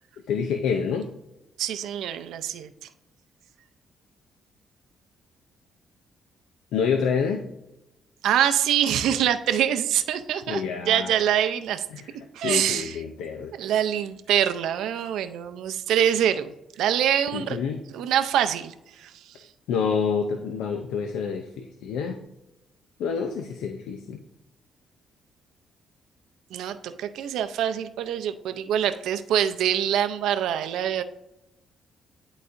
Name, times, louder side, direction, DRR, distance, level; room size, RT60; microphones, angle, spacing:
voice 1, 0.3-1.1 6.7-7.5 10.5-11.1 12.0-12.1 12.4-13.5 17.3-17.8 19.7-22.2 23.0-24.2, left 6 dB, 90° left, 5 dB, 0.5 m, -27 dB
voice 2, 1.6-2.7 8.2-11.9 12.3-13.0 13.5-17.6 17.9-19.3 26.5-31.0, right 10 dB, 85° right, 10 dB, 0.5 m, -25 dB
11.0 x 4.0 x 2.6 m, 0.91 s
cardioid pair, 90°, 0 cm